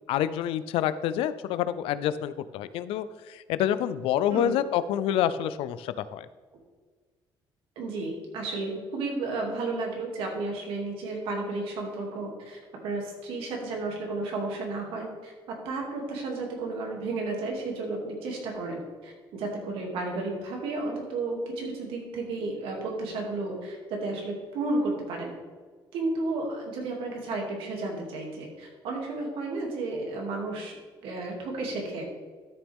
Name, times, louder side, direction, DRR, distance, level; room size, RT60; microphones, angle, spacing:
voice 1, 0.1-6.3, left 11 dB, 90° left, 14 dB, 0.5 m, -27 dB
voice 2, 7.8-15.3 15.6-25.3 25.9-30.8 31.0-32.1, right 2 dB, 80° right, 0 dB, 2.6 m, -32 dB
12.5 x 7.1 x 3.6 m, 1.5 s
cardioid pair, 155°, 9 cm